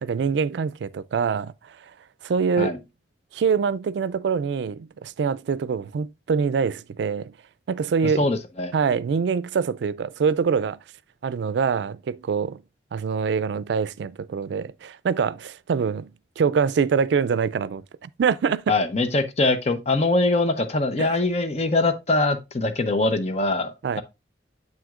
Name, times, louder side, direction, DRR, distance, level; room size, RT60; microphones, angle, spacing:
voice 1, 0.0-1.8 2.2-2.8 3.3-7.3 7.7-8.3 8.7-10.8 11.2-12.6 12.9-16.1 16.4-18.6 21.0-21.1 23.8-24.0, right 6 dB, 75° right, 0.3 m, -24 dB
voice 2, 8.0-8.7 18.7-24.0, left 2 dB, 35° left, 0.7 m, -23 dB
7.5 x 6.2 x 2.4 m
head